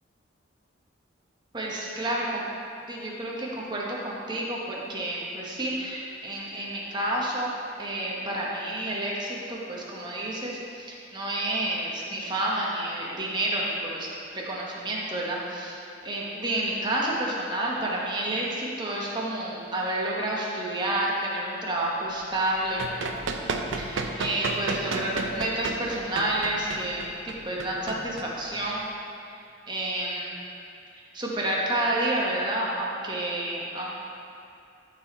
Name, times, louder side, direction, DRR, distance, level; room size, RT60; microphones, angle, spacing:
voice 1, 1.5-2.4 2.9-14.1 14.3-22.9 23.8-28.9 29.7-30.4 31.1-34.0, right 1 dB, 25° right, -4 dB, 1.2 m, -30 dB
Run, 22.4-28.9, right 3 dB, 90° right, 0.6 m, -32 dB
12.0 x 4.3 x 4.0 m, 2.6 s
head